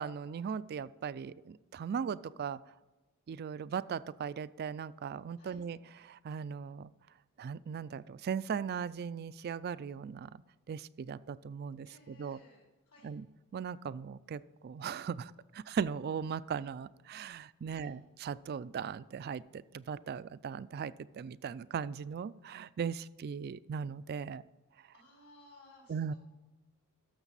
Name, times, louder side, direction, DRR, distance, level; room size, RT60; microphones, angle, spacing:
voice 1, 0.0-2.6 3.3-6.9 7.4-10.3 10.7-12.4 13.0-13.3 13.5-24.4 25.9-26.1, right 7 dB, 45° right, 18 dB, 0.3 m, -38 dB
voice 2, 11.9-13.1 17.7-17.9 24.9-26.2, left 2 dB, 70° left, -3 dB, 4.0 m, -59 dB
13.0 x 6.6 x 4.1 m, 1.1 s
head